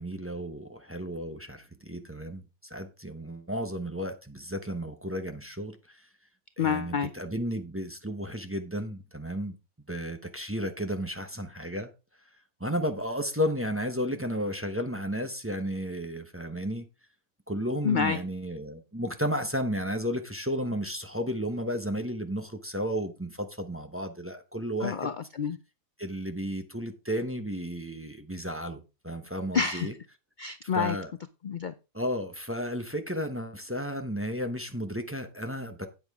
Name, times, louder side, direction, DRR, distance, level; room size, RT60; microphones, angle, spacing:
voice 1, 0.0-6.0 6.6-9.5 9.9-11.9 12.6-16.9 17.5-25.1 26.0-29.9 30.7-31.1 31.9-35.9, equal, 10° right, 0.9 m, -33 dB
voice 2, 6.6-7.1 17.8-18.2 24.8-25.6 29.5-29.9 30.4-31.0 31.4-31.7, left 6 dB, 55° left, 0.5 m, -28 dB
8.9 x 8.8 x 3.6 m
omnidirectional pair, 1.5 m